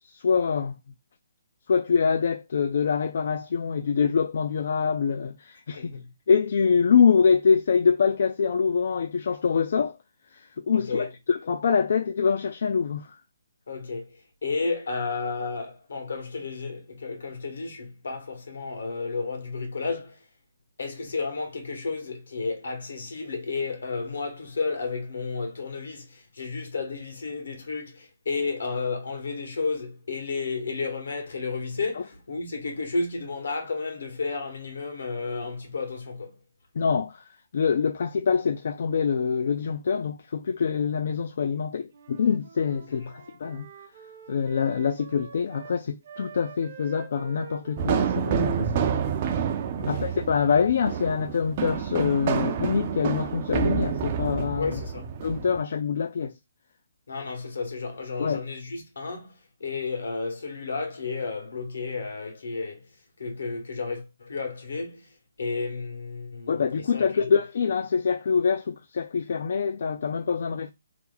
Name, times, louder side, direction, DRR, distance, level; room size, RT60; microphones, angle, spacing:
voice 1, 0.2-0.7 1.7-5.9 6.3-10.0 10.7-13.1 36.8-37.2 37.5-43.7 44.3-48.8 49.9-54.8 55.2-56.3 58.2-58.4 66.5-70.7, left 6 dB, 55° left, 0.4 m, -25 dB
voice 2, 5.7-6.1 10.7-11.1 13.7-20.2 20.8-36.3 42.9-43.1 49.8-50.1 54.5-55.1 57.1-62.9 63.2-67.3, left 4 dB, 75° left, 1.3 m, -32 dB
Wind instrument woodwind instrument, 41.9-45.8 46.0-50.4, right 6 dB, 50° right, 0.8 m, -47 dB
sound 1, 47.8-55.6, right 7 dB, 30° right, 0.4 m, -28 dB
3.0 x 2.1 x 3.8 m
hypercardioid pair, 165°, 0 cm